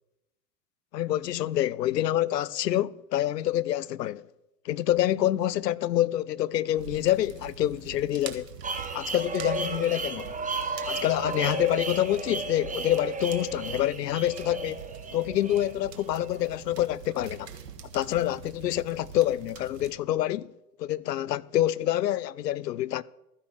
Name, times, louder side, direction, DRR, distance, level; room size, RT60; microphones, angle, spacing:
voice 1, 0.9-4.3 4.6-8.5 8.9-10.3 10.9-14.8 15.1-17.5 17.9-20.5 20.8-23.0, left 13 dB, 85° left, 0.7 m, -27 dB
sound 1, 6.8-19.9, right 8 dB, 85° right, 1.7 m, -44 dB
sound 2, 8.6-16.5, right 3 dB, 15° right, 1.6 m, -34 dB
14.0 x 10.0 x 6.3 m
hypercardioid pair, 100°, 48 cm